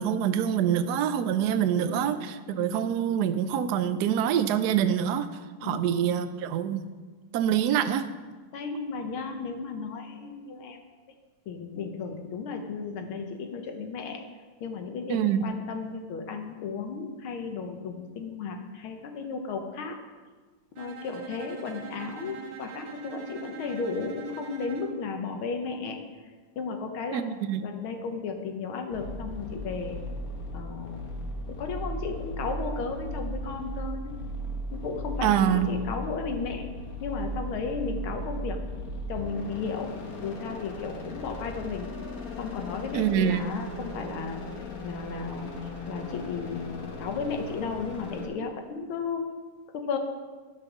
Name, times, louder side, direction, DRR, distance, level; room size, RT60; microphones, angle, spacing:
voice 1, 0.0-5.3 5.6-6.8 7.3-8.1 15.1-15.4 27.1-27.7 35.2-35.7 42.9-43.4, right 9 dB, 90° right, 10 dB, 0.8 m, -25 dB
voice 2, 1.8-2.2 2.6-2.9 5.6-5.8 8.5-10.8 11.5-14.2 14.6-20.0 20.8-26.0 26.6-27.2 27.6-30.0 30.5-31.1 31.5-34.1 34.7-36.7 37.0-38.6 39.1-39.9 40.2-41.9 42.4-44.4 44.8-45.5 45.9-49.2 49.7-50.0, left 4 dB, 75° left, 4 dB, 1.8 m, -34 dB
Bowed string instrument, 20.8-25.0, right 8 dB, 60° right, 1.6 m, -43 dB
sound 1, 28.9-48.3, equal, 45° left, 1.5 m, -37 dB
11.5 x 5.4 x 6.0 m, 1.4 s
omnidirectional pair, 2.4 m